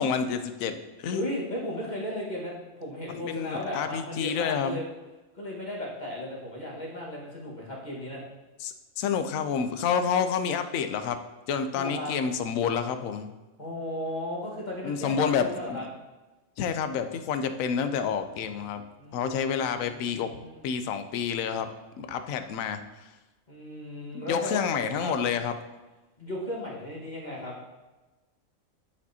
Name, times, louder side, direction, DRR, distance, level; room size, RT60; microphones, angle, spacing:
voice 1, 0.0-1.3 3.1-4.8 8.6-11.2 11.5-13.3 14.8-15.8 16.6-18.8 19.1-20.3 20.6-21.7 22.0-22.8 24.1-25.5, left 7 dB, 75° left, 9 dB, 1.0 m, -29 dB
voice 2, 1.1-4.8 5.3-8.2 11.7-12.2 13.6-15.8 19.0-20.7 23.5-24.6 25.0-25.1 26.2-27.5, left 1 dB, 35° left, -5 dB, 1.6 m, -36 dB
12.0 x 5.1 x 2.8 m, 1.1 s
omnidirectional pair, 1.4 m